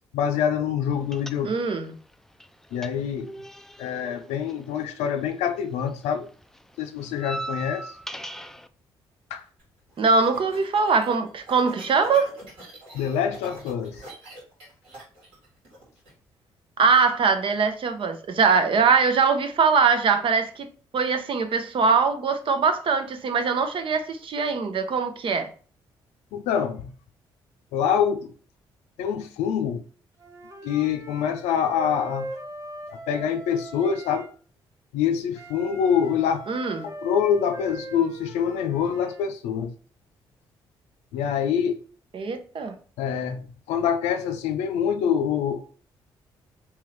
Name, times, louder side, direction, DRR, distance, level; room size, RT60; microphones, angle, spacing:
voice 1, 0.1-1.5 2.7-3.3 3.8-6.3 6.8-8.0 9.3-9.4 12.9-14.0 26.3-26.9 27.7-28.3 29.0-29.8 30.6-32.3 32.9-34.3 34.9-36.4 36.8-39.7 41.1-41.8 43.0-45.7, left 8 dB, 80° left, 0.5 m, -25 dB
sound 1, 1.1-5.5 5.8-8.7, right 1 dB, 5° left, 0.3 m, -39 dB
voice 2, 1.4-1.9 10.0-12.3 16.8-20.7 20.9-25.5 36.5-36.9 42.1-42.8, right 5 dB, 50° right, 0.7 m, -22 dB
rythmc pinball, 9.6-16.1, right 1 dB, 85° right, 1.7 m, -46 dB
Wind instrument woodwind instrument, 30.2-34.3 35.3-39.3, right 1 dB, 30° right, 1.1 m, -41 dB
3.6 x 2.9 x 3.2 m
hypercardioid pair, 50°, 11 cm